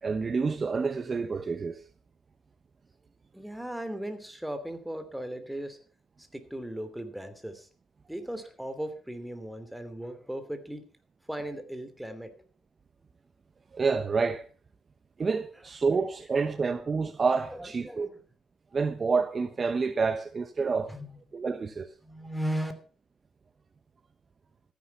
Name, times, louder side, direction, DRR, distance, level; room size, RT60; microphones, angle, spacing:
voice 1, 0.0-1.8 13.7-14.4 15.2-18.1 18.7-20.9 21.3-21.9, right 4 dB, 35° right, 0.9 m, -28 dB
voice 2, 3.3-5.8 6.3-7.7 8.1-10.8 11.3-12.3 17.5-18.2 20.9-21.2 22.0-22.7, right 1 dB, 5° right, 2.8 m, -37 dB
14.5 x 10.0 x 5.8 m
cardioid pair, 90°, 0 cm